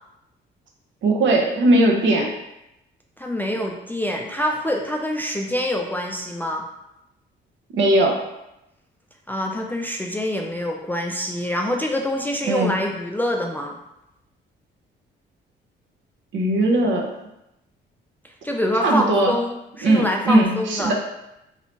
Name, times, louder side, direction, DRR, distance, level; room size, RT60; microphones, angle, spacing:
voice 1, 1.0-2.3 7.7-8.2 12.5-12.8 16.3-17.1 18.8-19.3 19.8-20.9, right 1 dB, 70° right, 0 dB, 0.8 m, -19 dB
voice 2, 3.2-6.6 9.3-13.8 18.4-20.9, left 1 dB, 10° left, 1 dB, 0.3 m, -25 dB
3.2 x 2.7 x 2.9 m, 0.87 s
cardioid pair, 90°, 20 cm